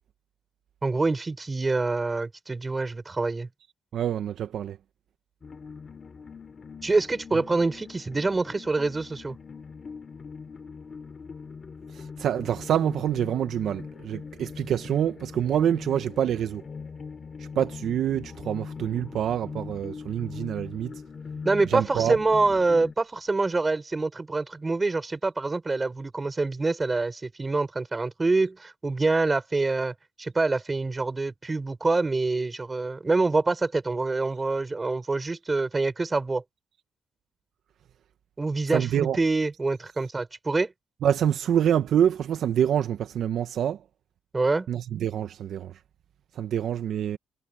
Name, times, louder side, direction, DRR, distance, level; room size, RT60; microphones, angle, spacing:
voice 1, 0.8-3.5 6.8-9.4 21.4-36.4 38.4-40.7 44.3-44.7, right 3 dB, 25° right, 5.3 m, -26 dB
voice 2, 3.9-4.8 11.9-16.6 17.4-20.9 21.6-22.2 38.7-39.2 41.0-43.8 44.7-45.7 46.3-47.2, right 9 dB, 70° right, 1.1 m, -26 dB
sound 1, 5.4-22.9, left 5 dB, 40° left, 2.9 m, -41 dB
cardioid pair, 90°, 0 cm